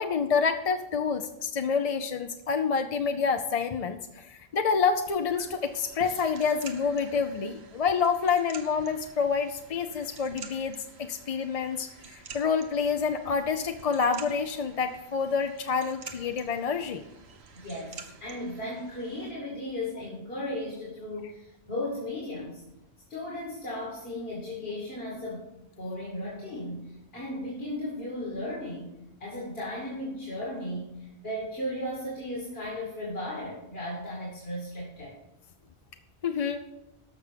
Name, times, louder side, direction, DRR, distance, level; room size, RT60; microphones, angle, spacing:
voice 1, 0.0-10.8 11.1-17.0 36.2-36.6, left 5 dB, 45° left, 7 dB, 0.5 m, -28 dB
sound 1, 5.1-19.3, right 5 dB, 80° right, 1.3 m, -48 dB
voice 2, 17.5-22.6 23.1-25.5 25.8-35.1, left 1 dB, 65° left, -5 dB, 2.6 m, -36 dB
14.0 x 5.9 x 5.1 m, 0.92 s
omnidirectional pair, 1.1 m